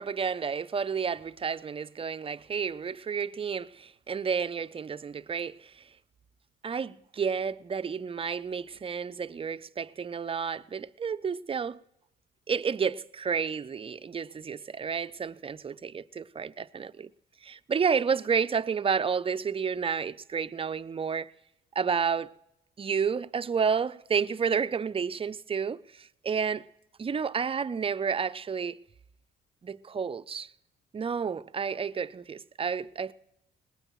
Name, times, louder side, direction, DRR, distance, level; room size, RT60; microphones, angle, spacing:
voice 1, 0.0-5.9 6.6-11.8 12.5-17.1 17.4-21.3 21.8-22.3 22.8-26.7 27.0-28.8 29.6-30.5 30.9-33.1, right 6 dB, 30° right, 0.5 m, -31 dB
20.5 x 19.0 x 3.1 m
cardioid pair, 90°, 20 cm